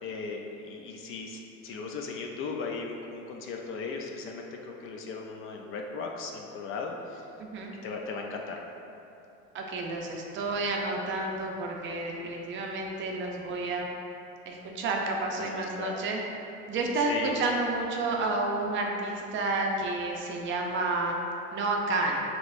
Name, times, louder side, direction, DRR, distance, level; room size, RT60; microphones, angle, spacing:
voice 1, 0.0-7.2 7.8-8.6 15.4-16.0 17.1-17.3, left 4 dB, 45° left, 1 dB, 0.4 m, -37 dB
voice 2, 7.4-7.7 9.5-13.9 14.5-16.2 16.7-21.2 21.5-22.2, right 2 dB, 40° right, 0 dB, 0.5 m, -30 dB
6.1 x 3.0 x 2.5 m, 2.8 s
cardioid pair, 145°, 31 cm